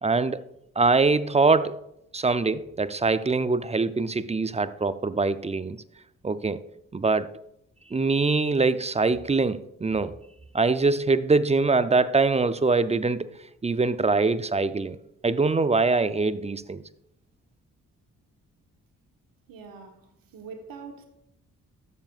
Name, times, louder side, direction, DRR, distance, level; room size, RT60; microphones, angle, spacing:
voice 1, 0.0-0.4 0.8-1.8 2.1-5.8 6.2-6.6 6.9-7.3 7.9-10.1 10.5-13.3 13.6-15.0 15.2-16.8, right 3 dB, 20° right, 0.5 m, -23 dB
voice 2, 19.5-21.1, right 5 dB, 75° right, 1.5 m, -43 dB
13.0 x 7.2 x 2.4 m
supercardioid pair, 45°, 35 cm